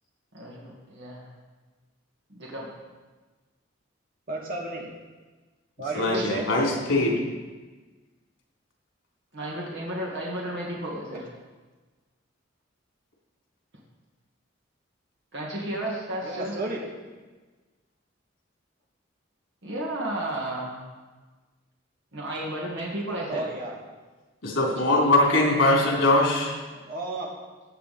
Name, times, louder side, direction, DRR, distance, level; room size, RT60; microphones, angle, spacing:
voice 1, 0.3-1.3 2.3-2.7 6.1-6.2 9.3-11.3 15.3-16.6 19.6-20.8 22.1-23.4, right 1 dB, 65° right, -3 dB, 2.0 m, -33 dB
voice 2, 4.3-4.9 5.8-6.5 11.1-11.2 16.2-16.8 23.3-23.8 26.9-27.3, right 2 dB, 50° right, -2 dB, 2.3 m, -32 dB
voice 3, 5.9-7.2 24.4-26.5, left 2 dB, 75° left, -2 dB, 3.3 m, -21 dB
15.5 x 8.4 x 4.2 m, 1.3 s
head